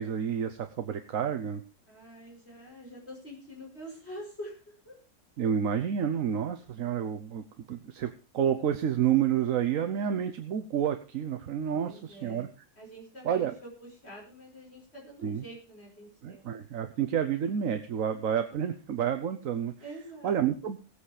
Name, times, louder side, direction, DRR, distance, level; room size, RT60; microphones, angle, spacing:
voice 1, 0.0-1.6 5.4-12.5 13.2-13.5 15.2-15.4 16.2-19.7 20.2-20.8, right 8 dB, 60° right, 8 dB, 1.2 m, -29 dB
voice 2, 1.9-4.9 11.7-12.5 12.8-16.5 19.8-20.6, right 1 dB, 40° left, -2 dB, 5.5 m, -46 dB
17.5 x 8.5 x 4.9 m, 0.32 s
omnidirectional pair, 1.7 m